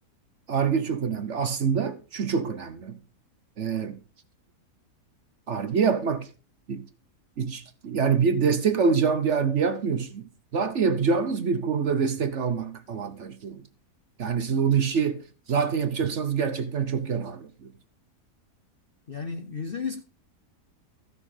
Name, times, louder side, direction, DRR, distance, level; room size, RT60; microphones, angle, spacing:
voice 1, 0.5-3.0 3.6-4.0 5.5-6.3 6.7-6.8 7.4-13.6 14.2-15.2 15.5-17.7, right 6 dB, 55° right, 1.0 m, -25 dB
voice 2, 19.1-20.0, left 5 dB, 50° left, 0.7 m, -33 dB
14.0 x 6.4 x 4.9 m
omnidirectional pair, 1.7 m